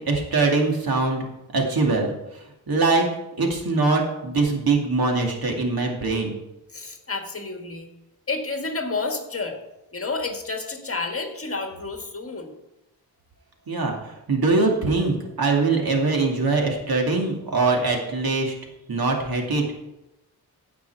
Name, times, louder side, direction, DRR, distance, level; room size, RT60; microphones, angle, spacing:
voice 1, 0.1-1.3 1.5-2.1 2.7-3.1 3.4-6.3 13.7-18.5 18.9-19.6, right 3 dB, 70° right, 1 dB, 2.4 m, -22 dB
voice 2, 6.7-7.9 8.3-9.6 9.9-12.6, left 3 dB, 35° left, 4 dB, 1.7 m, -30 dB
16.0 x 5.9 x 4.7 m, 0.92 s
wide cardioid pair, 105°, 38 cm